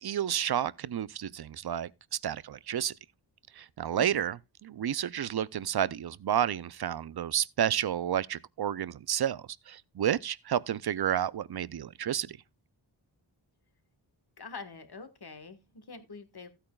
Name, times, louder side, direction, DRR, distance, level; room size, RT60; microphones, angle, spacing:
voice 1, 0.0-1.9 2.2-2.9 3.6-12.4, right 10 dB, 55° right, 0.5 m, -31 dB
voice 2, 14.4-16.5, left 4 dB, 55° left, 1.6 m, -45 dB
15.0 x 8.8 x 2.3 m
wide cardioid pair, 90°, 46 cm